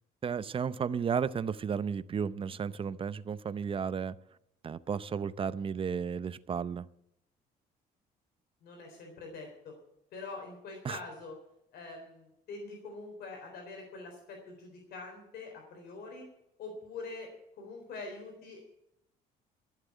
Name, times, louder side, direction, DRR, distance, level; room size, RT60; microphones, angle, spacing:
voice 1, 0.2-4.2 4.6-6.9 10.8-11.0, right 6 dB, 30° right, 0.6 m, -33 dB
voice 2, 8.6-9.7 10.1-11.3 11.7-16.3 16.6-17.3 17.6-18.6, left 3 dB, 70° left, 3.9 m, -44 dB
14.5 x 7.5 x 8.4 m
cardioid pair, 110°, 17 cm